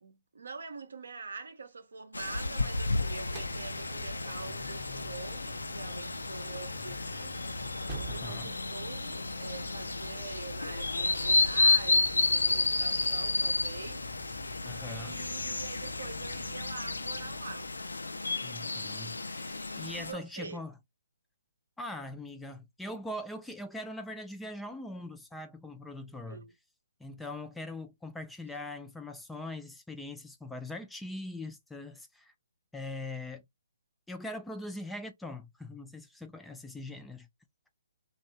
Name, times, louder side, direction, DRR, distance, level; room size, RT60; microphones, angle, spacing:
voice 1, 0.0-7.5 8.1-14.1 14.3-17.7 19.9-20.6 26.3-26.5, right 5 dB, 75° right, 0.6 m, -45 dB
sound 1, 2.1-20.1, left 3 dB, 90° left, 0.3 m, -32 dB
sound 2, 2.4-18.4, left 3 dB, 70° left, 0.7 m, -46 dB
sound 3, 3.3-9.6, right 4 dB, 30° right, 0.7 m, -49 dB
voice 2, 8.1-8.5 14.7-15.2 18.4-20.7 21.8-26.4 27.0-32.3 32.7-33.4 34.1-37.3, left 2 dB, 5° left, 0.3 m, -41 dB
2.6 x 2.1 x 2.6 m
figure-of-eight pair, 140°, 0 cm